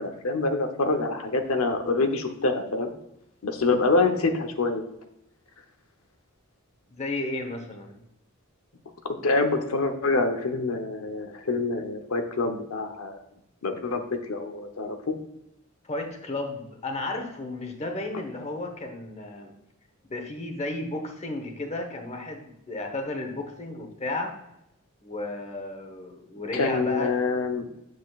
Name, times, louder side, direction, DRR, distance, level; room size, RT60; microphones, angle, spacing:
voice 1, 0.0-2.9 3.4-4.8 9.0-13.2 13.6-14.0 14.3-15.1 26.5-27.7, left 3 dB, 85° left, 6 dB, 0.8 m, -26 dB
voice 2, 6.9-8.0 15.8-19.5 20.0-24.3 25.0-27.1, left 2 dB, 30° left, 4 dB, 1.1 m, -33 dB
7.4 x 6.5 x 2.4 m, 0.84 s
head